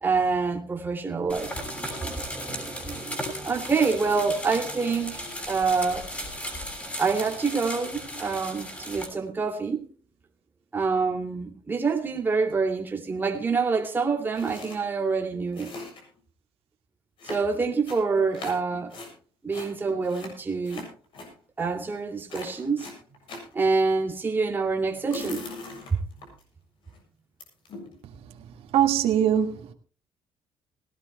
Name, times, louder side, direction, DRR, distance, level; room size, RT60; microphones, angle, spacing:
voice 1, 0.0-6.1 7.0-9.9 10.7-15.7 17.2-19.0 19.4-20.8 21.6-22.9 23.5-25.5 25.9-26.0, right 4 dB, 20° right, 2.6 m, -27 dB
sound 1, 1.3-9.1, equal, 15° left, 6.5 m, -36 dB
sound 2, 14.3-14.8 15.1-15.2 15.4-16.2 17.2-19.1 19.5-21.3 21.8-22.0 22.3-23.5 24.9-26.4 26.9-27.0 27.4-28.0, left 3 dB, 60° left, 7.5 m, -40 dB
voice 2, 28.7-29.7, right 10 dB, 75° right, 1.9 m, -22 dB
20.5 x 17.5 x 2.3 m
cardioid pair, 135°, 10 cm